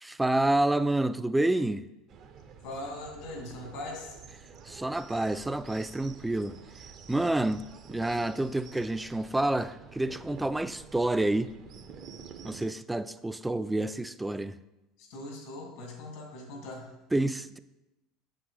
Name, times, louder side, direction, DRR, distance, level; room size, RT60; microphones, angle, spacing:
voice 1, 0.0-1.9 4.7-6.6 7.1-11.5 12.4-14.6 17.1-17.6, right 2 dB, 10° right, 0.3 m, -28 dB
sound 1, 2.1-12.7, right 6 dB, 50° right, 0.6 m, -49 dB
voice 2, 2.6-4.2 15.0-16.9, left 2 dB, 75° left, 2.1 m, -40 dB
7.3 x 6.1 x 3.2 m
hypercardioid pair, 90°, 0 cm